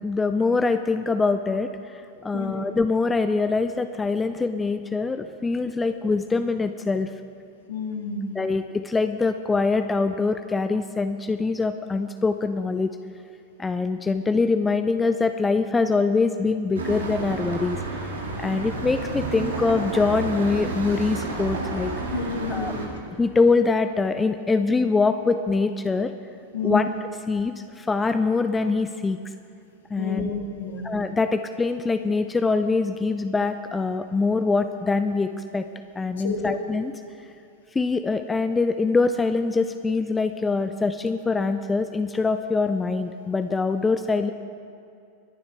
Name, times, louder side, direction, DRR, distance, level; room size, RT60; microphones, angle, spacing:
voice 1, 0.0-7.1 8.3-12.9 13.6-21.9 22.5-22.7 23.2-26.1 26.6-26.9 27.3-29.2 29.9-30.3 30.8-35.6 36.0-36.9 37.7-44.3, left 4 dB, 15° left, 10 dB, 0.5 m, -24 dB
voice 2, 2.3-2.7 7.7-8.3 22.1-22.8 26.5-26.9 30.0-30.9 36.2-36.6, left 4 dB, 60° left, 3 dB, 1.8 m, -30 dB
sound 1, 16.7-22.9, right 3 dB, 65° right, 2.1 m, -30 dB
22.5 x 11.0 x 3.4 m, 2.5 s
figure-of-eight pair, 90°, 0 cm